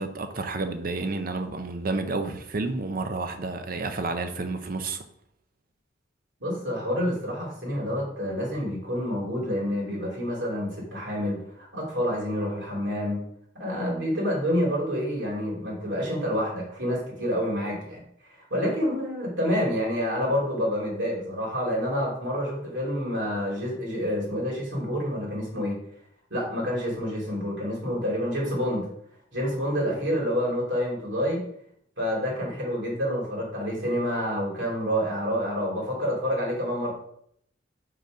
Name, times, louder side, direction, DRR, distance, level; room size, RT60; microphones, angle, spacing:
voice 1, 0.0-5.0, right 3 dB, 50° right, 0.6 m, -30 dB
voice 2, 6.4-13.2 13.5-18.0 18.5-25.8 26.3-28.9 29.3-31.4 32.0-36.9, equal, 85° right, 2.8 m, -28 dB
5.4 x 4.0 x 5.1 m
head